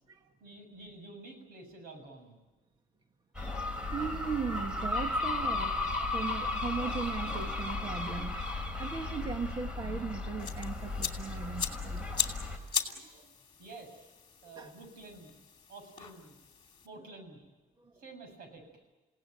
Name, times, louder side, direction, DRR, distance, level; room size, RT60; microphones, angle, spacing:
voice 1, 0.4-2.4 13.6-14.1 14.4-15.3 15.7-16.3 16.8-17.4 17.9-18.7, right 2 dB, 80° right, 6 dB, 7.2 m, -49 dB
sound 1, 3.3-12.6, left 2 dB, 5° right, 3.4 m, -35 dB
voice 2, 3.4-8.4 8.8-12.1 12.9-13.3 14.6-14.7 17.8-17.9, right 5 dB, 30° right, 5 dB, 1.5 m, -38 dB
sound 2, 10.4-16.9, left 7 dB, 30° left, 2.7 m, -39 dB
30.0 x 17.5 x 9.3 m, 1.1 s
cardioid pair, 180°, 15 cm